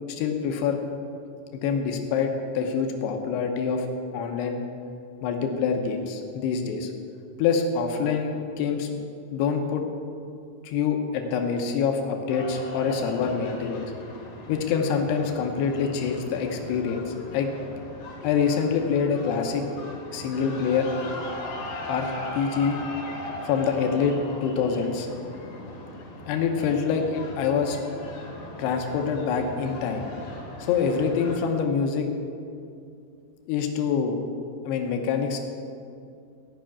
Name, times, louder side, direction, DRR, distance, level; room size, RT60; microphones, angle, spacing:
voice 1, 0.1-0.8 1.5-3.9 4.1-4.6 5.2-6.9 7.4-9.1 9.3-9.8 10.6-13.9 14.5-17.5 18.2-19.6 20.1-20.9 21.9-22.8 23.4-25.1 26.3-27.8 28.6-30.1 30.6-32.1 33.5-34.2 34.6-35.4, left 6 dB, 90° left, 4 dB, 3.0 m, -26 dB
sound 1, 12.3-31.4, left 2 dB, 65° left, 3.5 m, -39 dB
15.0 x 5.8 x 8.7 m, 2.4 s
omnidirectional pair, 4.6 m